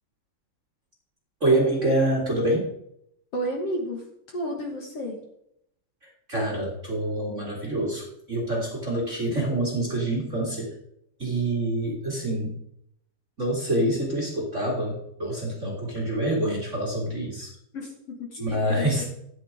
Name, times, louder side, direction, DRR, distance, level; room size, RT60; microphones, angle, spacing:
voice 1, 1.4-2.7 6.3-10.7 11.2-12.6 13.4-17.5 18.4-19.0, right 1 dB, 25° right, -2 dB, 2.0 m, -26 dB
voice 2, 3.3-4.0 4.3-5.2 17.7-18.6, equal, 50° left, 1 dB, 2.3 m, -31 dB
13.0 x 9.7 x 3.6 m, 0.74 s
omnidirectional pair, 3.8 m